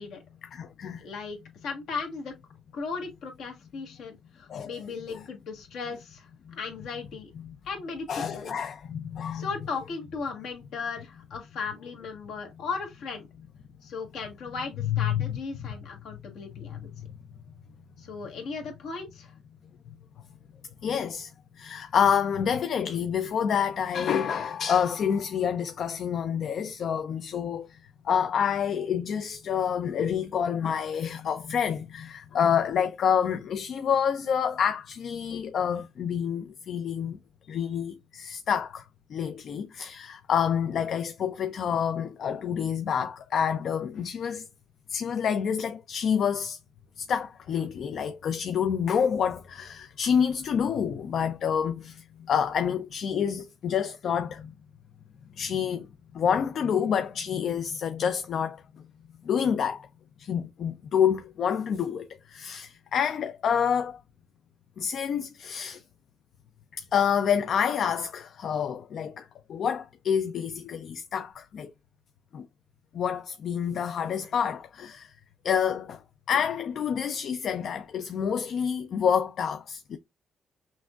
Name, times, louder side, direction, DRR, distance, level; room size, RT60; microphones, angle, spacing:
voice 1, 0.4-1.0 4.5-4.8 5.1-5.2 6.5-6.6 7.4-7.6 8.1-9.5 14.8-15.7 16.1-16.2 16.6-17.1 20.8-21.3 21.6-27.8 28.0-37.2 37.4-44.5 44.9-46.6 47.0-54.5 55.4-55.9 56.1-58.6 59.2-59.9 60.2-64.0 64.8-65.8 66.7-71.7 72.3-72.5 72.9-75.1 75.4-76.0 76.3-80.0, left 7 dB, 60° left, 0.4 m, -28 dB
voice 2, 1.0-1.4 1.6-2.3 2.7-6.3 6.6-7.3 7.6-8.5 9.3-13.3 13.8-16.9 18.0-19.3, left 4 dB, 80° left, 1.4 m, -36 dB
6.0 x 2.5 x 2.4 m
cardioid pair, 90°, 0 cm